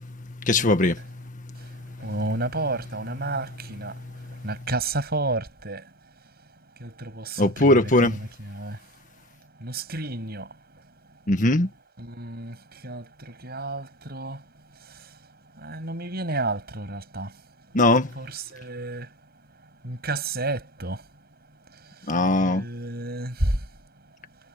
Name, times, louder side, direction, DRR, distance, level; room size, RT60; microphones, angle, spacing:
voice 1, 0.4-1.0 4.0-4.4 7.4-8.2 11.3-11.7 17.7-18.1 22.1-22.6, left 2 dB, 40° left, 1.7 m, -20 dB
voice 2, 2.0-4.0 4.3-5.9 6.8-8.8 9.6-10.8 12.0-14.5 14.8-15.2 15.5-17.4 18.2-19.1 19.8-21.0 21.7-22.1 22.4-23.7, right 2 dB, 55° right, 8.0 m, -31 dB
head